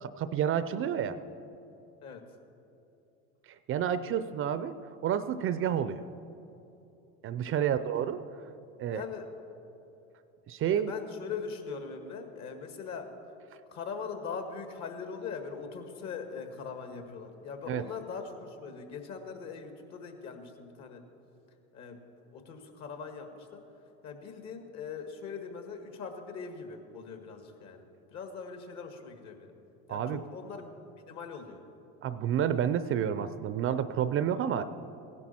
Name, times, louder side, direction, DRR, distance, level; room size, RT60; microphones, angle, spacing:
voice 1, 0.0-1.2 3.7-4.8 5.0-6.0 7.2-8.2 8.8-9.0 10.5-10.9 17.7-17.8 29.9-30.2 32.0-34.6, right 9 dB, 40° right, 13 dB, 0.5 m, -29 dB
voice 2, 7.5-7.9 8.9-9.3 10.6-13.1 13.7-21.0 21.7-22.0 22.3-23.6 24.0-27.8 28.1-29.5 29.9-30.8 31.1-31.6, left 5 dB, 50° left, 5 dB, 1.8 m, -41 dB
16.0 x 11.0 x 4.3 m, 2.8 s
supercardioid pair, 95°, 34 cm